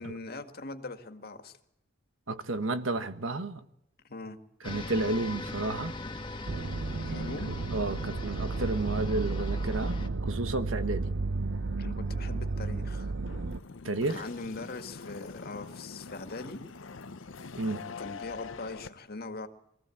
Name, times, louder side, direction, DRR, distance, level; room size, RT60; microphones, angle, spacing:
voice 1, 0.0-1.5 4.0-4.4 7.0-7.7 11.8-13.1 14.1-16.6 18.0-19.5, left 3 dB, 55° left, 1.9 m, -41 dB
voice 2, 2.3-3.6 4.6-5.9 7.5-11.1 13.8-14.2 17.6-17.8, right 2 dB, 85° right, 1.3 m, -32 dB
sound 1, 4.6-10.1, left 2 dB, 25° left, 1.6 m, -40 dB
sound 2, 6.5-13.6, right 3 dB, 70° right, 0.7 m, -33 dB
sound 3, 13.3-18.9, left 4 dB, 75° left, 0.7 m, -44 dB
23.0 x 15.5 x 8.5 m
head